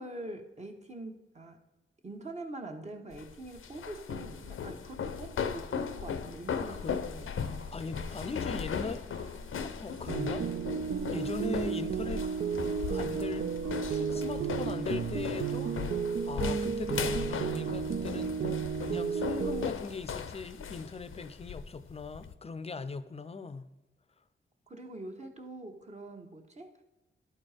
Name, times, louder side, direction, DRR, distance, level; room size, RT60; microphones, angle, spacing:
voice 1, 0.0-1.6 2.0-7.6 8.8-9.0 24.7-26.8, right 2 dB, 30° right, 1.1 m, -44 dB
sound 1, 3.1-22.3, left 6 dB, 75° left, 0.6 m, -38 dB
sound 2, 7.2-16.0, right 3 dB, 70° right, 0.9 m, -55 dB
voice 2, 7.7-9.0 9.6-10.5 11.1-12.3 12.9-13.5 13.9-15.8 16.2-23.6, left 4 dB, 30° left, 0.5 m, -40 dB
sound 3, 10.1-19.7, right 6 dB, 50° right, 0.4 m, -33 dB
11.5 x 4.4 x 4.9 m
wide cardioid pair, 100°, 21 cm